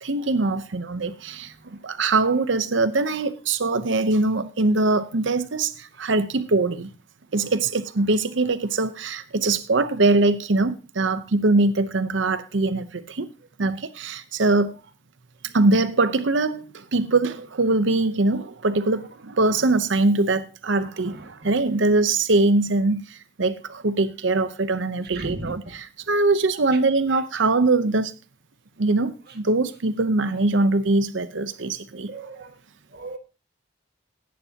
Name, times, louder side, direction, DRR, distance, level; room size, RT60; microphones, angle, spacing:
voice 1, 0.0-6.9 7.3-13.3 13.6-14.7 15.5-28.2 28.8-32.1, right 2 dB, 75° right, 0.8 m, -22 dB
voice 2, 21.1-21.6 25.1-25.7 31.9-32.5 32.9-33.2, right 2 dB, 55° right, 2.0 m, -37 dB
17.0 x 9.6 x 2.9 m
head